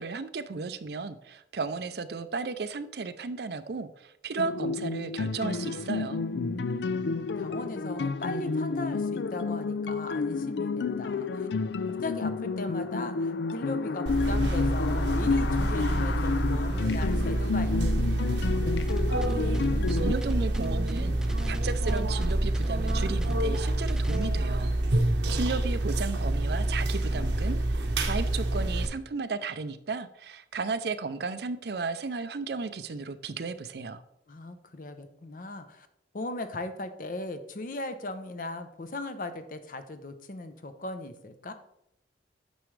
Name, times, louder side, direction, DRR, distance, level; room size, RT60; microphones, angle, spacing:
voice 1, 0.0-6.2 19.9-25.0 25.3-34.0, right 4 dB, 65° right, 12 dB, 0.5 m, -34 dB
sound 1, 4.4-20.1, left 4 dB, 75° left, 0.4 m, -30 dB
voice 2, 6.3-11.5 12.0-18.9 34.3-35.9 36.1-41.5, left 2 dB, 50° left, 9 dB, 0.7 m, -38 dB
sound 2, 14.1-28.9, right 1 dB, 85° right, 1.1 m, -27 dB
sound 3, 18.9-24.2, equal, 5° right, 0.3 m, -42 dB
9.2 x 6.1 x 3.3 m, 0.80 s
head